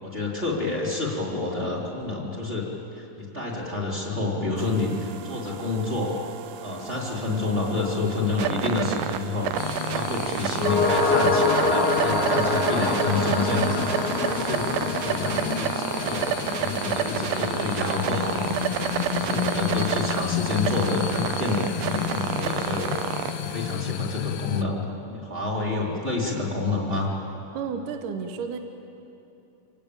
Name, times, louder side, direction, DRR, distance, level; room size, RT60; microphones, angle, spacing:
voice 1, 0.0-2.7 2.9-6.1 6.6-9.5 9.9-13.8 14.3-18.5 19.1-24.8 25.1-27.1, left 3 dB, 15° right, -3 dB, 3.9 m, -28 dB
sound 1, 4.6-23.8, right 10 dB, 85° right, 2.6 m, -30 dB
sound 2, 9.6-24.6, left 12 dB, 75° left, 2.0 m, -32 dB
sound 3, 10.5-19.0 19.3-19.4, left 3 dB, 40° left, 1.9 m, -27 dB
voice 2, 27.5-28.6, right 6 dB, 70° right, 7 dB, 2.6 m, -32 dB
26.5 x 18.0 x 8.7 m, 2.8 s
omnidirectional pair, 4.1 m